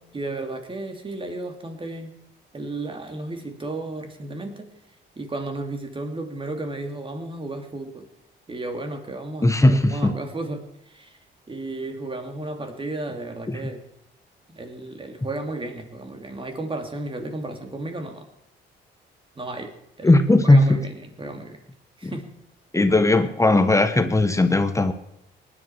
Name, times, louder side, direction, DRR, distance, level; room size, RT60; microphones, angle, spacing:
voice 1, 0.1-2.1 2.5-4.7 5.2-8.1 8.5-11.2 11.5-13.8 14.5-18.3 19.4-20.1 20.4-21.6 22.0-22.3, right 2 dB, 25° right, 5 dB, 2.8 m, -33 dB
voice 2, 9.4-10.1 13.5-13.6 20.0-20.8 22.0-22.1 22.7-24.9, left 2 dB, 15° left, 8 dB, 1.3 m, -18 dB
19.0 x 11.0 x 4.7 m, 0.80 s
cardioid pair, 90°, 20 cm